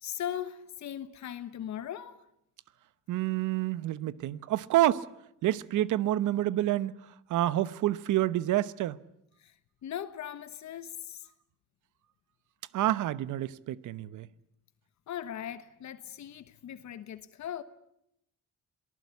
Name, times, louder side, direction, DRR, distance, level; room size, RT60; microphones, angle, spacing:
voice 1, 0.0-2.2 9.4-11.3 15.1-17.6, left 10 dB, 65° left, 1.3 m, -39 dB
voice 2, 3.1-5.1 5.4-6.9 7.3-9.0 12.7-14.3, right 14 dB, 80° right, 1.0 m, -28 dB
27.5 x 19.0 x 8.3 m
cardioid pair, 90°, 30 cm